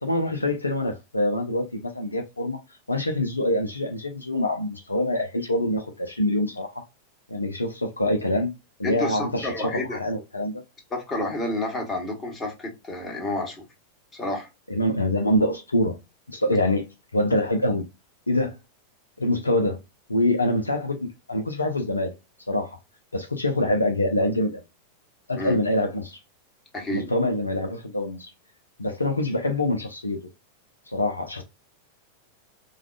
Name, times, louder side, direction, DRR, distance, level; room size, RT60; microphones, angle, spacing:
voice 1, 0.0-2.6 2.9-6.8 7.3-8.5 8.8-10.6 14.7-16.0 16.3-16.9 17.1-17.9 18.3-18.6 19.2-19.8 20.1-22.1 22.5-22.8 23.1-24.6 25.3-26.2 26.9-28.3 28.8-30.2 30.9-31.4, left 1 dB, 80° left, 0.5 m, -25 dB
voice 2, 8.8-10.0 10.9-13.6 14.1-14.5 16.5-16.6 25.4-25.5 26.7-27.1, left 1 dB, 20° left, 1.4 m, -30 dB
4.8 x 2.3 x 2.4 m
figure-of-eight pair, 90°, 0 cm